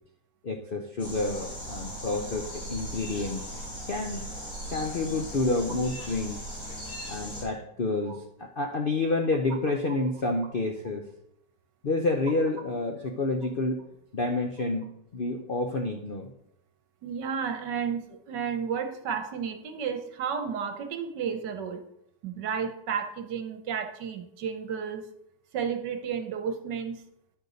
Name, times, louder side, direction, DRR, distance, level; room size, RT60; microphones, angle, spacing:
voice 1, 0.4-3.4 3.9-4.2 4.7-6.4 7.1-11.1 11.8-13.8 14.1-16.3, left 2 dB, 75° left, 3 dB, 0.5 m, -29 dB
sound 1, 1.0-7.4, equal, 40° left, 3.7 m, -38 dB
voice 2, 17.0-21.8 22.2-25.0 25.5-27.0, right 7 dB, 70° right, 6 dB, 1.5 m, -32 dB
10.0 x 6.6 x 4.0 m, 0.76 s
omnidirectional pair, 2.0 m